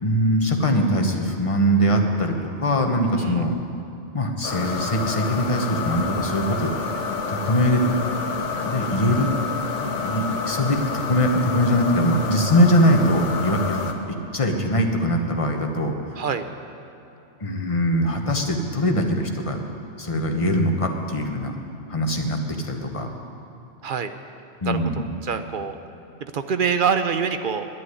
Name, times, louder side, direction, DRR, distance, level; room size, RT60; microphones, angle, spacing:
voice 1, 0.0-2.3 2.6-3.5 4.1-6.7 7.3-7.8 8.6-9.3 10.0-13.8 14.1-16.0 17.4-19.6 20.0-21.5 21.9-23.1 24.6-25.0, equal, 30° left, 3 dB, 1.1 m, -22 dB
sound 1, 4.4-13.9, left 4 dB, 85° left, 1.3 m, -28 dB
voice 2, 16.2-16.5 23.8-24.1 24.7-25.8 26.3-27.7, right 6 dB, 55° right, 9 dB, 0.7 m, -25 dB
10.5 x 9.5 x 9.7 m, 2.9 s
omnidirectional pair, 1.2 m